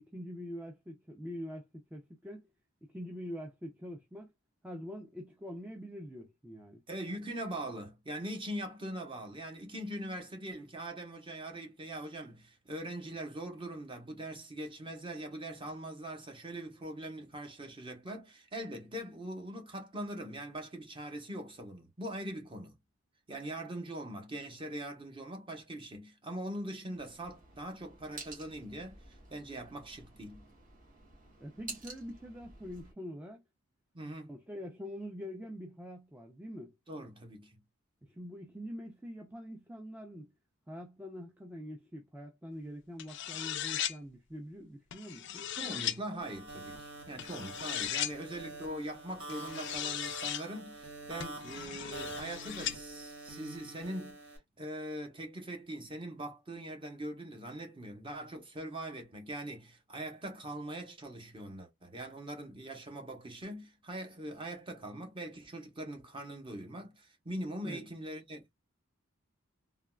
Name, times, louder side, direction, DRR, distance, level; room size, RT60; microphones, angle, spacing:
voice 1, 0.0-1.6 1.9-2.5 2.9-4.3 4.6-6.8 31.4-33.4 34.3-36.7 38.1-40.3 40.7-45.4 67.6-67.8, equal, 5° right, 0.4 m, -44 dB
voice 2, 6.9-22.7 23.3-30.5 33.9-34.3 36.9-37.6 45.6-54.2 54.6-68.4, right 1 dB, 25° right, 0.8 m, -42 dB
sound 1, 26.9-32.9, right 3 dB, 40° right, 1.3 m, -51 dB
sound 2, 43.0-44.0 44.9-46.0 47.2-48.1 49.3-50.4 51.2-52.8, left 11 dB, 55° left, 0.4 m, -37 dB
sound 3, 46.2-54.4, right 2 dB, 80° right, 1.5 m, -46 dB
3.5 x 2.2 x 2.2 m
head